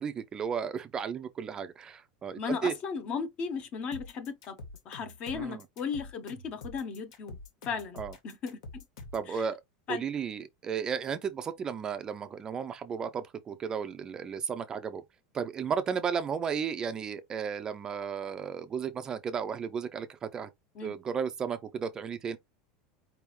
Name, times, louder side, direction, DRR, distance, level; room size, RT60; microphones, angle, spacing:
voice 1, 0.0-2.7 5.3-5.6 8.0-8.1 9.1-9.6 9.9-15.0 15.3-20.5 20.8-22.4, right 7 dB, 20° right, 0.5 m, -34 dB
voice 2, 2.4-4.6 4.8-7.4 7.6-8.0 8.2-8.6 9.3-9.5 9.9-10.1 20.7-20.9, left 5 dB, 35° left, 0.8 m, -35 dB
sound 1, 3.9-9.3, left 2 dB, 75° left, 2.0 m, -46 dB
4.7 x 3.5 x 3.1 m
supercardioid pair, 165°, 4 cm